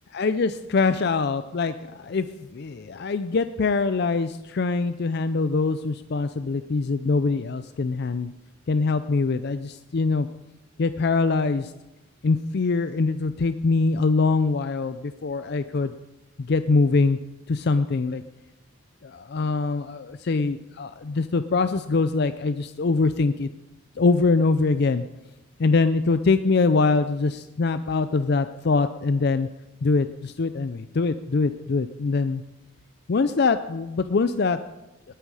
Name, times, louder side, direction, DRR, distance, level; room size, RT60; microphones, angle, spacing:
voice 1, 0.1-2.3 2.5-8.3 8.7-10.3 10.8-11.7 12.2-15.9 16.4-17.2 17.5-18.2 19.0-23.5 24.0-25.0 25.6-29.5 29.8-32.4 33.1-34.6, left 4 dB, 50° left, 11 dB, 0.4 m, -23 dB
20.0 x 9.2 x 4.8 m, 0.99 s
head